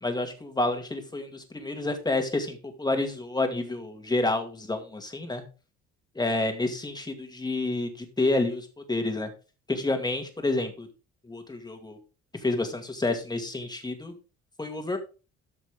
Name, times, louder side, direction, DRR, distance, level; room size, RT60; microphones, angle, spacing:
voice 1, 0.0-5.4 6.2-9.3 9.7-10.9 11.3-12.0 12.4-14.1 14.6-15.0, left 2 dB, 15° left, 5 dB, 2.2 m, -29 dB
13.0 x 5.9 x 3.7 m, 0.33 s
cardioid pair, 105°, 29 cm